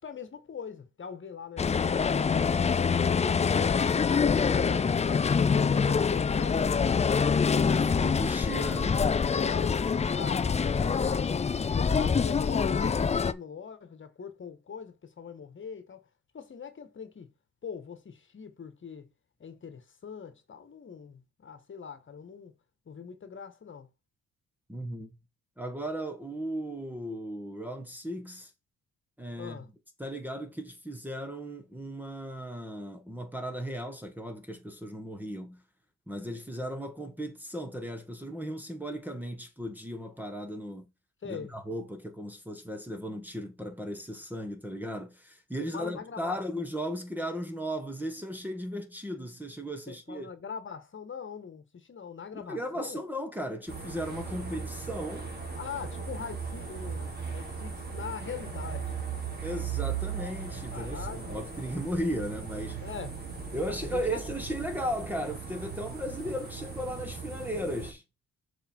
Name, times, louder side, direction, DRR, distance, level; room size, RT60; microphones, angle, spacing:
voice 1, 0.0-3.1 3.5-7.2 9.3-11.4 11.8-16.0 16.3-17.3 17.6-19.1 19.4-22.5 22.9-23.9 29.4-29.7 41.2-41.5 45.7-46.4 49.9-53.0 55.6-59.0 60.7-61.4 62.8-63.1 63.7-64.2, left 6 dB, 40° left, 1.6 m, -42 dB
sound 1, 1.6-13.3, left 6 dB, 20° left, 0.5 m, -25 dB
voice 2, 7.5-9.0 24.7-25.1 25.6-28.5 29.2-29.6 30.0-35.6 36.1-40.9 41.2-50.3 52.3-55.3 59.4-62.8 63.5-68.0, equal, 5° right, 1.5 m, -36 dB
sound 2, 53.7-67.9, right 6 dB, 35° right, 3.2 m, -38 dB
6.6 x 5.1 x 4.6 m
cardioid pair, 90°, 30 cm